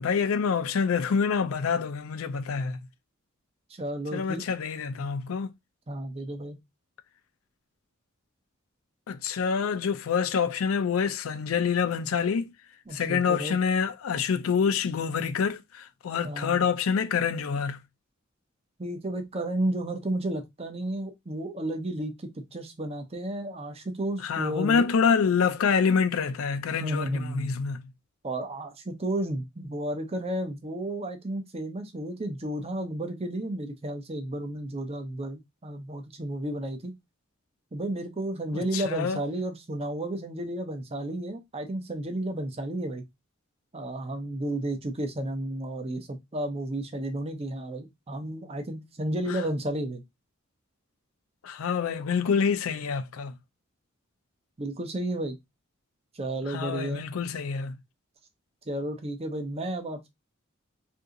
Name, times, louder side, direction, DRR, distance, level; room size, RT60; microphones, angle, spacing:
voice 1, 0.0-2.8 4.1-5.5 9.1-12.5 12.9-17.8 24.2-27.8 38.5-39.2 49.3-49.4 51.4-53.4 56.5-57.8, left 6 dB, 80° left, 0.4 m, -26 dB
voice 2, 3.7-4.5 5.9-6.6 12.9-13.6 16.2-16.7 18.8-24.8 26.8-27.7 28.2-36.9 37.7-43.0 43.7-50.0 54.6-55.4 56.1-57.0 58.7-60.1, right 1 dB, 30° right, 0.7 m, -32 dB
2.7 x 2.7 x 3.6 m
head